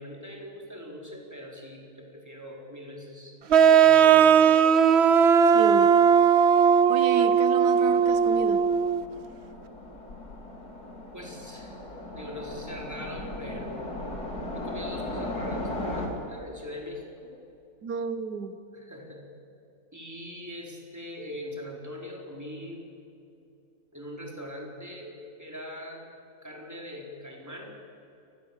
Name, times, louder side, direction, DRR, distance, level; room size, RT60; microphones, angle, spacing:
voice 1, 0.0-4.7 5.4-5.7 11.1-11.8 12.1-17.4 18.7-19.2 19.9-22.9 23.9-26.0 26.4-27.8, left 1 dB, 10° right, -1 dB, 4.3 m, -41 dB
sound 1, 3.5-9.0, right 7 dB, 55° right, 0.8 m, -18 dB
voice 2, 5.5-5.9 6.9-8.6 17.8-18.6, right 6 dB, 85° right, 10 dB, 1.6 m, -32 dB
Train, 7.8-16.1, left 1 dB, 75° left, 3.9 m, -37 dB
28.5 x 20.0 x 7.3 m, 2.7 s
omnidirectional pair, 1.7 m